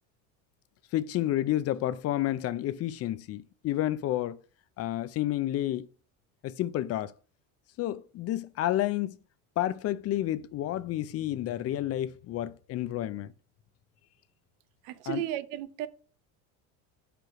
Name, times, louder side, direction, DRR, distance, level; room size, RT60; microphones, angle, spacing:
voice 1, 0.9-4.4 4.8-5.9 6.4-7.1 7.8-9.2 9.6-13.3 15.1-15.2, left 13 dB, 40° left, 0.4 m, -30 dB
voice 2, 14.8-15.9, right 12 dB, 80° right, 0.7 m, -34 dB
5.1 x 4.4 x 4.7 m
supercardioid pair, 105°, 37 cm